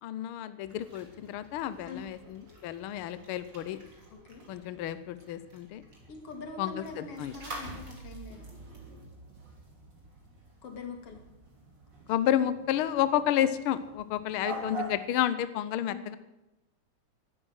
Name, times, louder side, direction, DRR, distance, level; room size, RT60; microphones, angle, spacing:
voice 1, 0.0-3.8 4.5-5.8 6.6-7.3 12.1-16.2, left 11 dB, 80° left, 13 dB, 1.2 m, -31 dB
sound 1, 0.6-15.1, right 2 dB, 35° right, 3.7 m, -46 dB
voice 2, 6.1-8.5 10.6-11.2 15.9-16.2, left 4 dB, 55° left, 4 dB, 3.2 m, -43 dB
18.0 x 12.5 x 6.4 m, 0.96 s
omnidirectional pair, 3.3 m